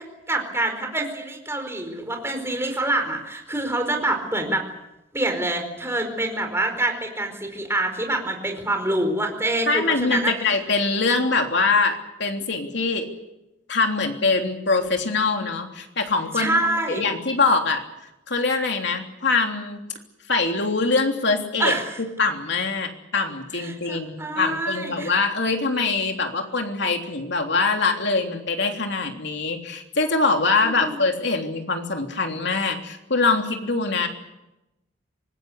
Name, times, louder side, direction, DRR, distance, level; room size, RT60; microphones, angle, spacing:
voice 1, 0.0-4.6 5.1-10.3 16.4-17.0 21.6-22.0 23.6-25.1 30.8-31.0, right 1 dB, 15° right, 4 dB, 4.8 m, -26 dB
voice 2, 9.7-13.1 13.7-16.6 16.9-17.8 18.3-19.8 20.3-21.7 22.2-34.1, left 3 dB, 65° left, 3 dB, 3.3 m, -23 dB
25.5 x 19.5 x 8.2 m, 0.92 s
head